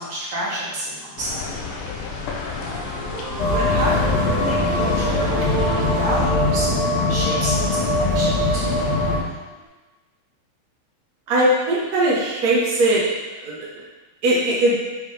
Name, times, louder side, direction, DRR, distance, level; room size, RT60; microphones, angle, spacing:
voice 1, 0.0-1.8 2.2-2.9 3.5-9.3, equal, 45° right, -8 dB, 2.4 m, -30 dB
sound 1, 1.2-6.3, left 4 dB, 70° left, 2.1 m, -32 dB
sound 2, 2.6-9.7, right 4 dB, 65° right, 1.2 m, -32 dB
sound 3, 3.4-9.2, left 2 dB, 50° left, 2.0 m, -21 dB
voice 2, 11.3-13.0 13.4-13.5 14.2-14.7, right 1 dB, 85° right, -6 dB, 0.8 m, -19 dB
8.0 x 5.3 x 3.6 m, 1.2 s
omnidirectional pair, 4.2 m